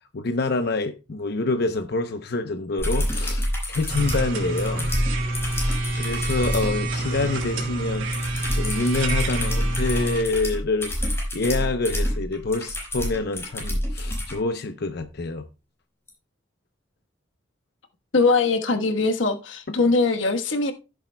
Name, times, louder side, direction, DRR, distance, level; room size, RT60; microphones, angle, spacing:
voice 1, 0.1-4.9 6.0-8.1 8.5-10.9 11.3-15.5, left 3 dB, 60° left, 0.8 m, -26 dB
sound 1, 2.8-6.7 8.1-14.3 16.1-16.2, equal, 15° left, 5.0 m, -27 dB
sound 2, 3.9-10.2, right 2 dB, 90° right, 3.0 m, -28 dB
voice 2, 18.1-20.7, left 3 dB, 90° left, 1.3 m, -21 dB
15.5 x 7.9 x 2.2 m
head